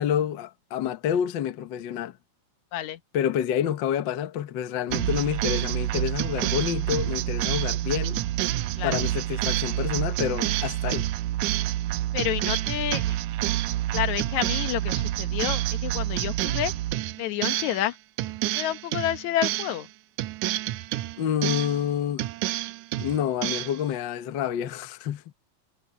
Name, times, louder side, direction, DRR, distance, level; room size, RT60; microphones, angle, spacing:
voice 1, 0.0-2.1 3.1-8.2 8.8-11.1 21.2-22.2 23.0-25.3, left 9 dB, 60° left, 1.2 m, -28 dB
sound 1, 4.9-17.9 18.2-19.9 20.2-21.9 22.2-23.8, right 15 dB, 90° right, 2.0 m, -28 dB
voice 2, 12.1-13.0 13.9-16.7 17.2-17.9 18.6-19.9, left 12 dB, 80° left, 2.4 m, -29 dB
omnidirectional pair, 3.3 m